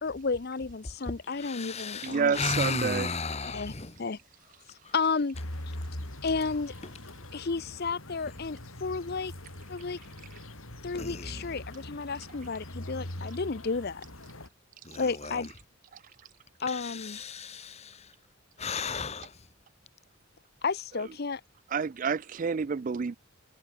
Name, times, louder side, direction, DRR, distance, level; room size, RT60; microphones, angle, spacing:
voice 1, 0.0-2.4 3.5-3.7 4.0-4.2 4.7-5.4 6.2-6.7 7.3-9.3 9.7-10.0 10.8-14.0 15.0-15.5 16.6-17.2 20.6-21.4, left 4 dB, 50° left, 0.6 m, -32 dB
voice 2, 1.3-4.0 4.8-4.9 10.9-11.5 14.8-15.5 16.7-18.1 18.6-19.5, left 4 dB, 30° left, 1.4 m, -35 dB
voice 3, 2.0-3.1 21.7-23.2, right 5 dB, 40° right, 0.3 m, -29 dB
sound 1, 5.3-14.5, left 1 dB, 75° left, 5.3 m, -42 dB
head